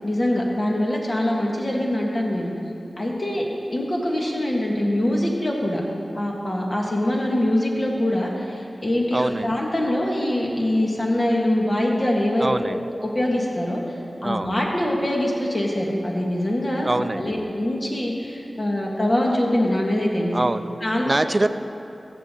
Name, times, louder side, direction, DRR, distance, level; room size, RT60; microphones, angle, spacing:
voice 1, 0.0-2.5 3.0-5.8 6.1-20.4 20.8-21.2, left 1 dB, 45° left, -2 dB, 1.8 m, -24 dB
voice 2, 9.1-9.5 12.4-12.8 14.2-14.5 16.8-17.3 20.3-20.7 21.0-21.5, right 2 dB, 35° right, 12 dB, 0.4 m, -23 dB
15.5 x 7.0 x 3.8 m, 2.7 s
cardioid pair, 50°, 0 cm